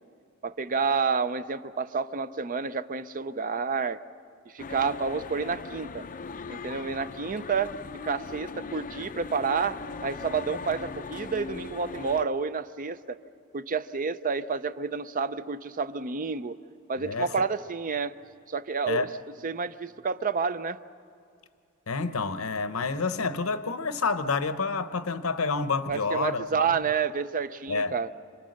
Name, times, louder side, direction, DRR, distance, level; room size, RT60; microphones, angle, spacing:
voice 1, 0.4-4.0 4.5-6.1 6.5-7.7 8.0-13.2 13.5-16.6 16.9-18.1 18.5-19.1 19.4-20.8 25.9-28.1, right 5 dB, 40° right, 0.6 m, -29 dB
sound 1, 4.6-12.3, left 4 dB, 40° left, 0.5 m, -39 dB
voice 2, 17.0-17.3 18.9-19.1 21.9-26.7 27.7-27.9, left 4 dB, 75° left, 0.9 m, -28 dB
26.5 x 25.5 x 6.5 m
head